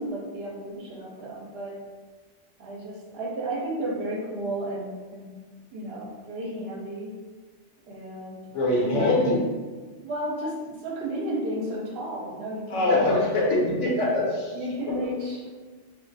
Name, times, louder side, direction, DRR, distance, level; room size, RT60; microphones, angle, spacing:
voice 1, 0.0-1.8 2.6-5.3 5.7-7.2 7.9-9.1 10.0-13.1 14.5-15.5, right 1 dB, 60° right, -2 dB, 0.8 m, -33 dB
voice 2, 8.5-9.4 12.7-14.5, left 2 dB, 80° left, -2 dB, 1.1 m, -23 dB
2.6 x 2.4 x 3.9 m, 1.4 s
omnidirectional pair, 1.2 m